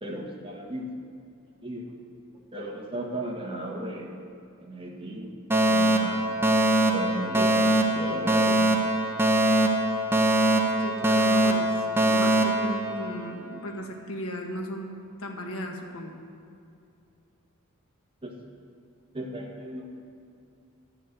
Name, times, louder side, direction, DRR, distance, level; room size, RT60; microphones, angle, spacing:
voice 1, 0.0-0.9 1.6-1.9 2.3-4.1 4.6-5.4 5.6-6.3 6.9-8.6 18.2-18.4 19.1-20.0, right 1 dB, 25° right, -1 dB, 1.5 m, -35 dB
Alarm, 5.5-13.5, right 1 dB, 10° right, 0.8 m, -23 dB
voice 2, 10.8-14.9 15.2-16.1, equal, 70° left, 2 dB, 1.4 m, -36 dB
10.5 x 6.6 x 8.1 m, 2.5 s
head